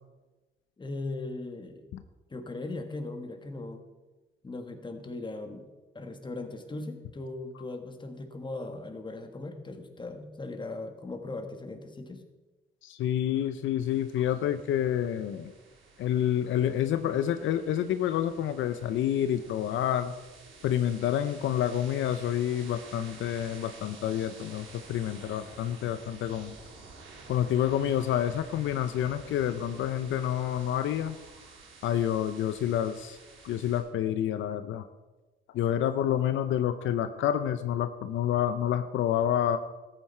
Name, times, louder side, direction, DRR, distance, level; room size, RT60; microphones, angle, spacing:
voice 1, 0.8-1.9 2.3-3.8 4.4-5.7 5.9-12.2, left 2 dB, 25° left, 6 dB, 1.6 m, -38 dB
voice 2, 12.8-15.5 16.0-20.1 20.6-26.6 27.3-31.2 31.8-33.2 33.4-34.9 35.5-39.6, left 10 dB, 75° left, 10 dB, 0.6 m, -28 dB
sound 1, 13.8-33.8, right 4 dB, 85° right, 2.7 m, -51 dB
14.0 x 9.0 x 4.4 m, 1.2 s
cardioid pair, 90°, 20 cm